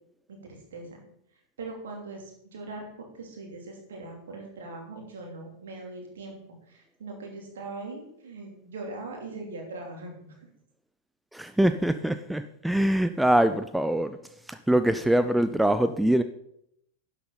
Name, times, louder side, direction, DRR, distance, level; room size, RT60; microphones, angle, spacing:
voice 1, 0.3-1.0 1.6-6.4 6.7-10.4, right 3 dB, 65° right, 1 dB, 2.8 m, -41 dB
voice 2, 11.3-14.2 14.5-16.2, right 1 dB, 5° right, 11 dB, 0.4 m, -23 dB
11.5 x 7.7 x 3.9 m, 0.75 s
figure-of-eight pair, 90°, 0 cm